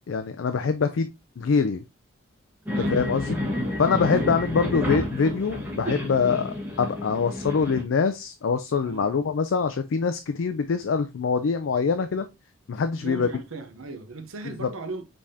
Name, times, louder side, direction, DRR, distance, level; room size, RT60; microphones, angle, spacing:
voice 1, 0.1-1.1 1.4-1.8 2.9-3.4 3.8-12.3 12.7-13.3, left 5 dB, 65° left, 0.4 m, -24 dB
sound 1, 2.7-7.8, left 1 dB, 10° right, 1.3 m, -30 dB
voice 2, 2.7-3.3 4.0-4.6 8.8-9.2 11.6-11.7 13.0-15.0, right 3 dB, 80° right, 0.8 m, -38 dB
5.2 x 3.5 x 2.7 m
head